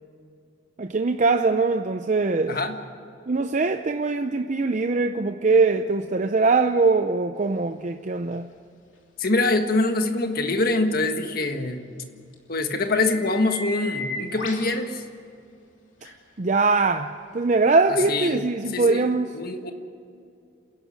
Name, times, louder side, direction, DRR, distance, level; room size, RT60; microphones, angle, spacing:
voice 1, 0.8-2.6 3.3-8.5 16.4-19.3, right 3 dB, 40° right, 0.6 m, -22 dB
voice 2, 2.5-2.8 9.2-11.9 12.5-15.0 17.9-19.7, left 2 dB, 50° left, 1.5 m, -25 dB
sound 1, 8.3-8.4 12.3-12.4 12.8-14.7 16.0-16.1 17.7-17.8, left 2 dB, 85° left, 3.1 m, -35 dB
28.0 x 11.5 x 8.3 m
head